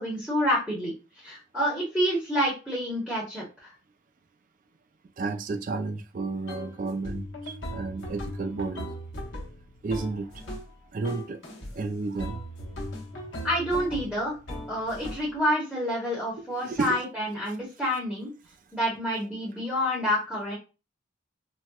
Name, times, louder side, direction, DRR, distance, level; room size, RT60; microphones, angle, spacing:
voice 1, 0.0-3.7 13.4-14.4 14.7-18.3 18.7-20.5, equal, 5° left, 0.9 m, -28 dB
voice 2, 5.2-8.9 9.8-10.3 10.9-11.4 11.7-12.4 16.6-17.0, right 3 dB, 40° right, 0.3 m, -32 dB
sound 1, 6.5-6.7 7.0-10.8 11.0-11.7 12.2-15.4, equal, 75° left, 0.9 m, -38 dB
4.2 x 2.1 x 2.3 m
head